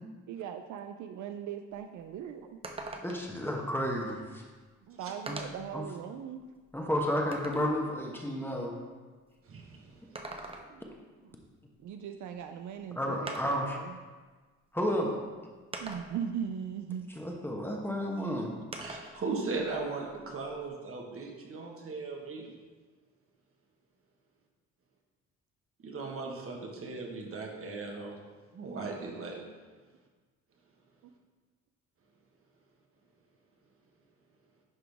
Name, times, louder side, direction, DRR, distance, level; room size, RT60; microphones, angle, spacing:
voice 1, 0.3-2.6 3.5-3.7 4.9-6.4 10.7-10.8 11.8-14.0 15.8-17.1 18.1-18.6 22.4-22.6 31.0-31.1, right 8 dB, 70° right, 7 dB, 0.5 m, -40 dB
sound 1, 1.7-1.8 2.1-2.2 2.6-3.4 4.5-4.6 5.3-5.7 6.3-7.7 9.9-10.9 12.4-12.5 13.3-13.7 14.7-14.8 15.7-16.4 18.7-19.2 19.6-20.7, right 2 dB, 20° right, 0.7 m, -43 dB
voice 2, 3.0-4.4 5.3-5.4 5.7-5.8 6.7-8.8 13.0-13.8 14.7-15.2 17.2-18.5, equal, 5° left, 0 dB, 1.1 m, -32 dB
voice 3, 9.4-10.3 18.8-22.5 25.8-28.1 28.5-29.4, right 3 dB, 45° right, 1 dB, 1.4 m, -38 dB
11.0 x 3.8 x 3.5 m, 1.4 s
cardioid pair, 90°, 30 cm